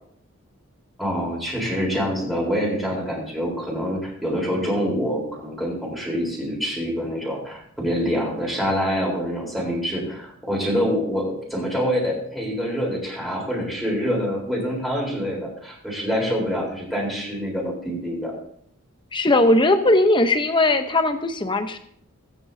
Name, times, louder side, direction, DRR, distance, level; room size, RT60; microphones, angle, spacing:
voice 1, 1.0-18.3, equal, ahead, -3 dB, 4.0 m, -26 dB
voice 2, 19.1-21.8, left 2 dB, 20° left, 8 dB, 0.9 m, -19 dB
18.0 x 9.5 x 2.8 m, 0.66 s
head